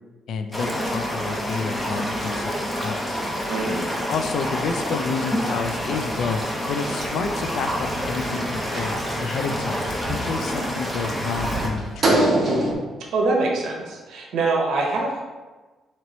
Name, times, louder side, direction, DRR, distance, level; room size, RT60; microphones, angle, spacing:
voice 1, 0.3-3.2 4.1-12.5, left 5 dB, 75° left, 7 dB, 0.3 m, -30 dB
sound 1, 0.5-11.7, equal, 10° left, 0.8 m, -28 dB
voice 2, 3.5-3.9 13.1-15.2, right 3 dB, 80° right, -1 dB, 0.8 m, -24 dB
sound 2, 5.3-12.7, right 1 dB, 45° right, 0.9 m, -28 dB
3.0 x 2.9 x 4.0 m, 1.3 s
cardioid pair, 90°, 0 cm